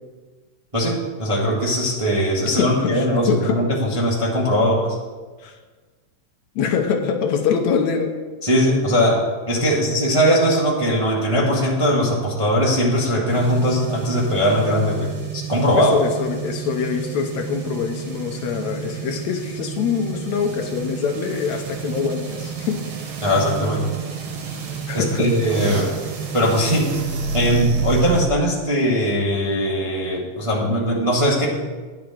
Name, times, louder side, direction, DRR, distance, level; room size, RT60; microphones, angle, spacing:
voice 1, 0.7-5.0 8.4-15.9 23.2-23.8 24.9-25.9 26.3-26.9 27.3-31.5, equal, 15° right, -4 dB, 1.1 m, -20 dB
voice 2, 2.6-3.6 5.4-5.6 6.6-8.2 15.7-22.8 24.9-25.3 25.8-25.9, left 6 dB, 75° left, 4 dB, 2.2 m, -24 dB
sound 1, 13.3-28.3, right 6 dB, 75° right, 2.7 m, -29 dB
10.5 x 6.2 x 7.5 m, 1.4 s
omnidirectional pair, 3.4 m